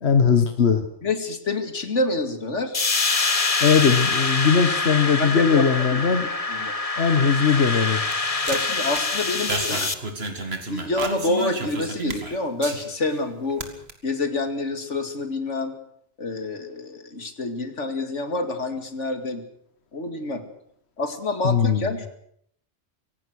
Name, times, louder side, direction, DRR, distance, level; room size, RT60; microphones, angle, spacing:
voice 1, 0.0-0.8 3.6-6.3 7.0-8.0 21.4-21.9, left 6 dB, 65° left, 8 dB, 1.6 m, -19 dB
voice 2, 1.0-2.8 5.2-5.7 5.9-6.0 6.5-6.7 8.5-9.9 10.4-13.6 14.0-15.7 16.2-19.4 19.9-20.4 21.0-22.1, left 2 dB, 85° left, 8 dB, 2.6 m, -27 dB
sound 1, 2.7-9.9, left 3 dB, 30° left, 1.2 m, -25 dB
sound 2, 7.3-13.2 13.5-13.9, right 2 dB, 60° right, 2.5 m, -32 dB
24.5 x 17.5 x 6.4 m, 0.67 s
omnidirectional pair, 1.2 m